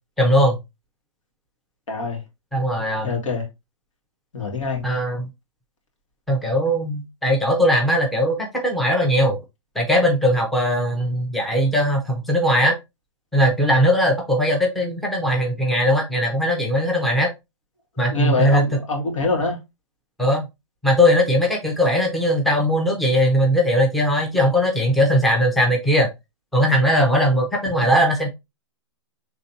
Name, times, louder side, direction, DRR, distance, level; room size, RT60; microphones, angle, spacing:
voice 1, 0.2-0.6 2.5-3.1 4.8-5.3 6.3-9.4 9.7-12.8 13.3-17.3 18.0-18.6 20.2-20.5 20.8-26.1 26.5-28.3, equal, ahead, 0.7 m, -19 dB
voice 2, 1.9-2.2 3.0-3.5 4.3-4.9 18.1-19.6, left 3 dB, 85° left, 2.1 m, -24 dB
5.7 x 3.3 x 2.7 m
hypercardioid pair, 160°, 16 cm